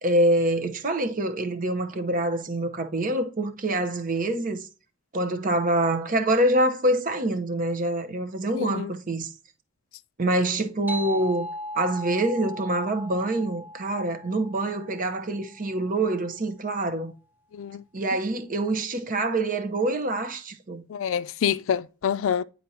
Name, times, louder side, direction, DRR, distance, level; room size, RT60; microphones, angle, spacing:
voice 1, 0.0-4.7 5.1-9.3 10.2-11.5 11.8-17.1 17.9-20.8, right 1 dB, 45° right, 0.8 m, -25 dB
voice 2, 8.6-8.9 17.5-17.8 20.9-22.4, left 8 dB, 90° left, 0.4 m, -27 dB
sound 1, 10.9-15.8, left 1 dB, 10° right, 0.8 m, -38 dB
9.3 x 4.3 x 2.7 m
head